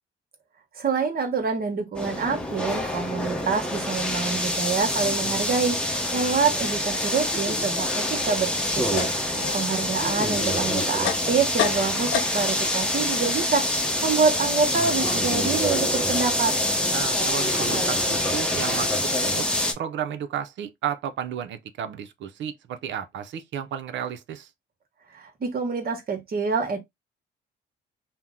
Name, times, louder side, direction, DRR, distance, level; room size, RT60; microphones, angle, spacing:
voice 1, 0.7-16.5 25.1-26.8, right 5 dB, 50° right, 1.1 m, -26 dB
sound 1, 1.9-19.7, left 1 dB, 5° left, 0.8 m, -26 dB
sound 2, 8.6-12.7 13.0-15.9, left 10 dB, 75° left, 0.5 m, -33 dB
voice 2, 16.9-19.5 19.8-24.5, right 9 dB, 70° right, 0.6 m, -33 dB
2.8 x 2.1 x 3.5 m
cardioid pair, 90°, 20 cm